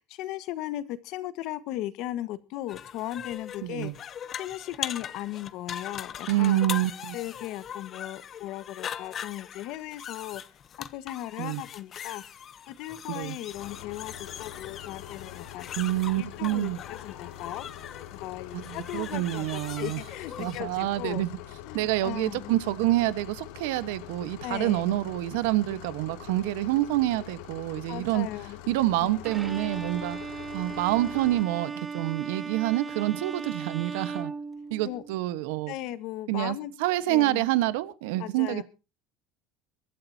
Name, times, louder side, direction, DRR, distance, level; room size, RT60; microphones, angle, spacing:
voice 1, 0.0-6.6 7.1-12.2 12.7-15.7 16.2-17.7 18.1-21.2 21.6-22.5 24.4-24.9 27.9-28.6 29.0-29.2 34.8-35.0 35.7-36.7 37.1-37.5 38.2-38.6, left 14 dB, 60° left, 1.5 m, -37 dB
sound 1, 2.7-20.6, left 9 dB, 30° left, 0.9 m, -41 dB
voice 2, 3.6-3.9 6.3-7.1 11.4-11.6 13.1-13.3 15.8-16.8 18.5-20.0 20.4-21.3 21.7-28.3 28.7-30.2 30.5-34.3 34.7-35.7 36.3-38.6, right 16 dB, 85° right, 1.3 m, -27 dB
sound 2, 13.5-31.4, left 12 dB, 75° left, 2.4 m, -44 dB
Bowed string instrument, 29.2-35.2, right 5 dB, 15° right, 1.0 m, -37 dB
23.0 x 12.5 x 2.8 m
cardioid pair, 150°, 0 cm